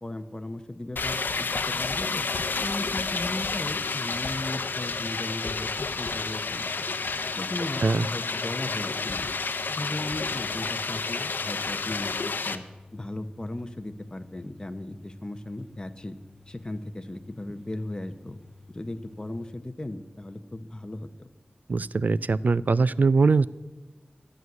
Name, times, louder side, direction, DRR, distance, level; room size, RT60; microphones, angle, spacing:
voice 1, 0.0-2.3 2.6-6.9 7.4-9.3 9.7-12.6 12.9-16.2 16.5-18.4 18.7-21.1, left 1 dB, 25° left, 8 dB, 0.8 m, -36 dB
sound 1, 1.0-12.6, left 4 dB, 85° left, 0.7 m, -30 dB
sound 2, 1.7-19.5, left 3 dB, ahead, 1.8 m, -52 dB
voice 2, 21.7-23.5, right 4 dB, 60° right, 19 dB, 0.3 m, -22 dB
12.0 x 6.3 x 9.5 m, 1.1 s
wide cardioid pair, 85°, 3 cm